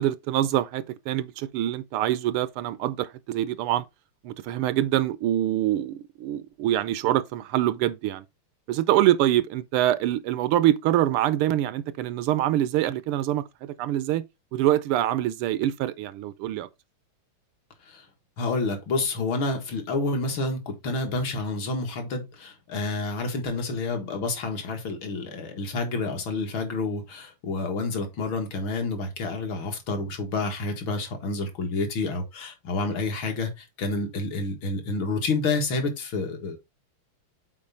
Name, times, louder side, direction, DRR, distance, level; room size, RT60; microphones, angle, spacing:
voice 1, 0.0-3.8 4.2-8.2 8.7-14.2 14.5-16.7, right 13 dB, 85° right, 1.6 m, -25 dB
voice 2, 18.4-36.6, left 3 dB, 65° left, 2.4 m, -29 dB
7.6 x 4.5 x 4.1 m
omnidirectional pair, 2.4 m